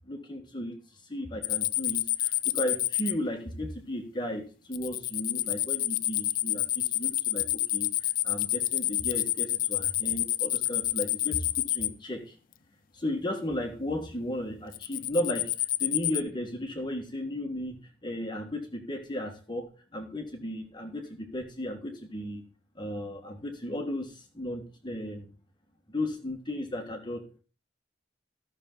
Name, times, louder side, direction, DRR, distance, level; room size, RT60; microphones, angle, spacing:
voice 1, 0.1-0.8 1.1-7.9 8.2-12.3 12.9-15.5 15.8-22.4 22.8-25.3 25.9-27.4, left 1 dB, 25° left, 3 dB, 1.6 m, -35 dB
sound 1, 1.4-3.1 4.7-11.9 14.7-16.2, left 15 dB, 50° left, 0.4 m, -29 dB
14.0 x 6.4 x 3.9 m, 0.35 s
head